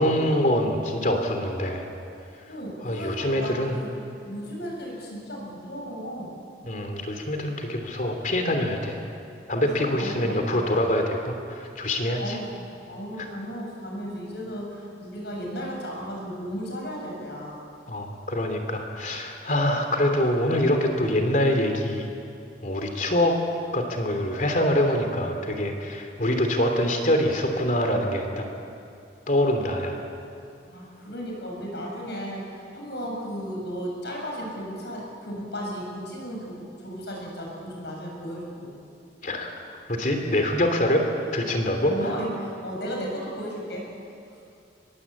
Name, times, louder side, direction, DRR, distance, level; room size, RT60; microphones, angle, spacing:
voice 1, 0.0-1.9 2.8-3.8 6.6-9.0 9.5-12.4 17.9-22.1 22.6-23.4 23.7-28.4 29.3-30.0 39.2-39.5 39.9-41.0 41.3-41.9, left 1 dB, 45° left, 4 dB, 3.1 m, -24 dB
voice 2, 2.5-3.9 4.2-6.3 9.6-10.6 12.2-12.5 12.9-17.6 30.7-32.4 32.7-38.8 41.8-43.9, equal, 65° left, -1 dB, 7.6 m, -35 dB
24.0 x 21.0 x 8.6 m, 2.6 s
head